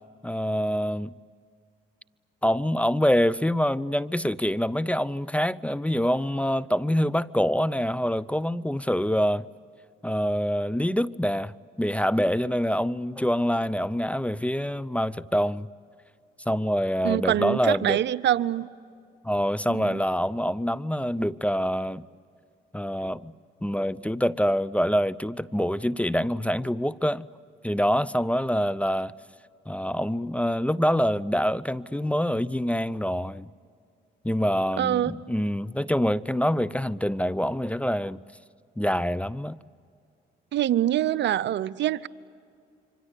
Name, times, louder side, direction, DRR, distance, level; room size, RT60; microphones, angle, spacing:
voice 1, 0.2-1.1 2.4-9.5 10.0-11.5 11.8-15.7 16.5-18.0 19.2-22.1 22.7-23.3 23.6-27.3 27.6-29.1 29.7-33.5 34.2-38.2 38.8-39.6, equal, 5° left, 0.6 m, -25 dB
voice 2, 17.0-18.7 19.7-20.0 34.8-35.1 40.5-42.1, right 11 dB, 65° right, 0.7 m, -25 dB
27.0 x 24.5 x 8.4 m
supercardioid pair, 60°, 20 cm